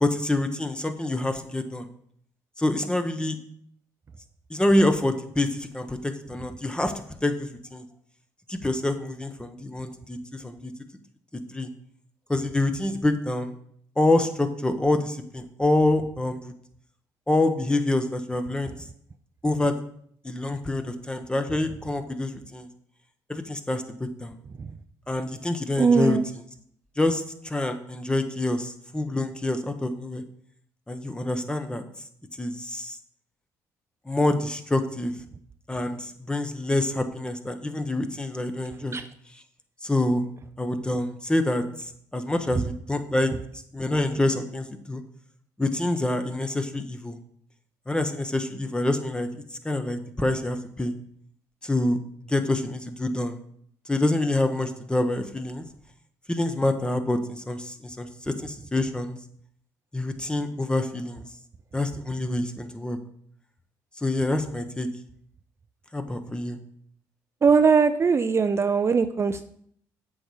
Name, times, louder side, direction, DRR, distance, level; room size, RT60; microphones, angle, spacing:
voice 1, 0.0-1.9 2.6-3.4 4.5-7.8 8.5-10.7 11.5-11.7 12.3-13.5 14.0-16.4 17.3-18.7 19.4-19.7 20.2-22.7 23.3-24.3 25.1-26.2 27.0-30.2 30.9-31.8 32.4-33.0 34.1-35.1 35.7-39.0 39.8-40.2 40.6-43.3 43.7-45.0 45.6-47.2 47.9-50.9 51.6-52.0 52.3-53.3 53.9-55.6 56.3-59.2 59.9-61.3 61.7-63.0 64.0-64.9 65.9-66.6, left 2 dB, 10° left, 8 dB, 1.1 m, -26 dB
voice 2, 25.8-26.2 38.9-39.0 67.4-69.4, right 5 dB, 35° right, 9 dB, 0.5 m, -20 dB
7.7 x 5.4 x 4.8 m, 0.65 s
supercardioid pair, 65°, 8 cm